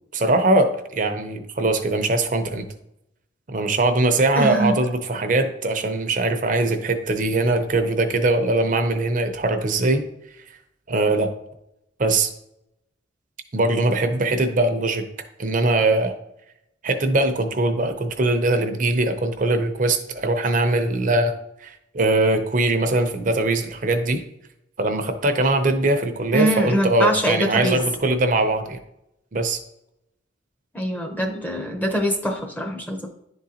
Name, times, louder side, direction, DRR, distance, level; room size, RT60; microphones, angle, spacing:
voice 1, 0.1-2.6 3.5-10.0 10.9-11.3 12.0-12.3 13.5-15.0 15.4-16.1 16.8-21.4 21.6-24.2 24.8-28.8 29.3-29.6, right 2 dB, 45° right, 7 dB, 0.7 m, -21 dB
voice 2, 4.3-4.8 26.3-27.8 30.7-33.1, right 1 dB, 10° left, 2 dB, 0.7 m, -23 dB
10.5 x 3.8 x 2.8 m, 0.82 s
head